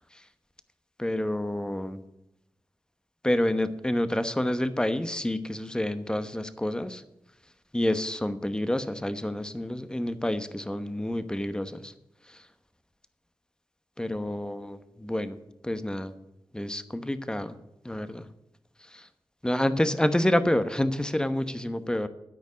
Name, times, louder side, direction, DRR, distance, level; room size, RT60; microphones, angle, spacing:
voice 1, 1.0-2.0 3.2-7.0 7.7-11.9 12.3-12.4 14.0-15.4 15.6-16.1 16.5-17.6 17.8-18.3 18.8-19.1 19.4-22.1, left 1 dB, 10° left, 11 dB, 1.0 m, -28 dB
13.5 x 5.2 x 8.3 m, 0.88 s
cardioid pair, 55°, 9 cm